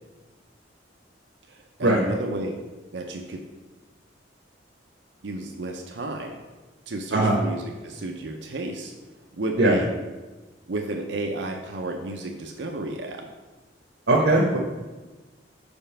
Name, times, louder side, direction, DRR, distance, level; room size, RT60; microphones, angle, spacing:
voice 1, 1.5-2.6 2.9-3.4 5.2-6.4 6.9-8.9 9.4-9.9 10.7-13.3, right 2 dB, 70° right, 2 dB, 0.6 m, -32 dB
voice 2, 14.1-14.6, right 2 dB, 90° right, -4 dB, 1.0 m, -19 dB
5.3 x 4.9 x 5.6 m, 1.2 s
head